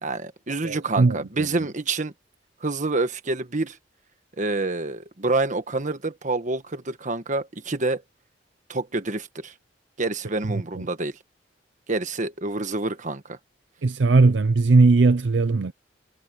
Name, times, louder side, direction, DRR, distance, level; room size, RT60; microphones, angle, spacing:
voice 1, 0.0-2.1 2.6-3.8 4.4-8.0 8.7-9.5 10.0-11.2 11.9-13.4, right 3 dB, 40° right, 1.4 m, -27 dB
voice 2, 0.6-1.7 10.4-10.9 13.8-15.7, right 3 dB, 65° right, 0.6 m, -19 dB
head